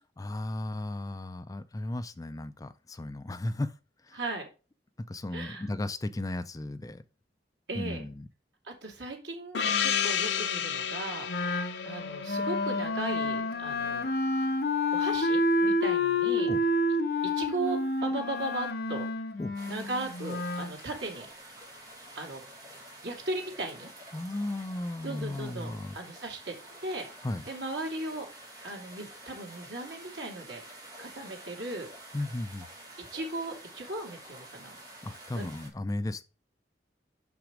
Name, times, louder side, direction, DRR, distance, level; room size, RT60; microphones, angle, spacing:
voice 1, 0.2-3.7 4.0-4.2 5.1-7.0 7.8-8.3 16.5-16.6 19.4-19.5 24.1-26.0 27.2-27.4 32.1-32.7 35.0-36.2, left 1 dB, 20° left, 0.4 m, -35 dB
voice 2, 5.3-5.7 7.7-8.0 8.6-14.1 14.4-14.5 14.9-16.5 17.2-19.0 19.7-21.3 22.1-22.4 23.0-23.9 25.0-26.5 26.8-27.1 27.5-28.3 28.6-31.9 33.0-34.8 35.3-35.4, right 2 dB, 80° right, 2.5 m, -37 dB
Gong, 9.5-13.9, left 8 dB, 90° left, 0.6 m, -32 dB
Wind instrument woodwind instrument, 11.3-20.7, left 2 dB, 60° left, 0.9 m, -29 dB
sound 1, 19.5-35.7, right 1 dB, 20° right, 2.5 m, -49 dB
6.1 x 6.0 x 5.0 m
head